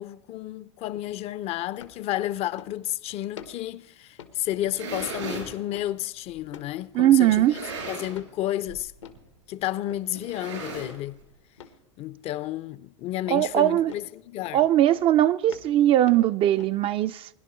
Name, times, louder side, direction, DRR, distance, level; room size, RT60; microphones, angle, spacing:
voice 1, 0.0-7.6 7.9-8.9 9.5-11.2 12.0-14.6, left 14 dB, 40° left, 0.5 m, -31 dB
sound 1, 0.9-1.2 1.8-2.0 2.6-2.9 3.4-3.7 4.2-4.4 4.9-5.2 5.7-5.9 6.5-6.8 7.3-7.5 8.1-8.4 9.0-9.3 9.9-10.1 10.7-11.0 11.6-11.8 13.3-13.6 13.9-14.1 14.4-14.6 14.9-15.2 15.5-16.8, left 7 dB, 90° left, 1.2 m, -46 dB
sound 2, 4.5-5.5 6.3-6.4 7.3-8.3 8.6-8.9 9.2-9.3 10.1-11.2, right 3 dB, 90° right, 5.3 m, -36 dB
voice 2, 6.9-7.5 13.3-13.9 14.5-17.3, right 13 dB, 35° right, 0.3 m, -20 dB
21.0 x 11.0 x 3.1 m
hypercardioid pair, 100°, 15 cm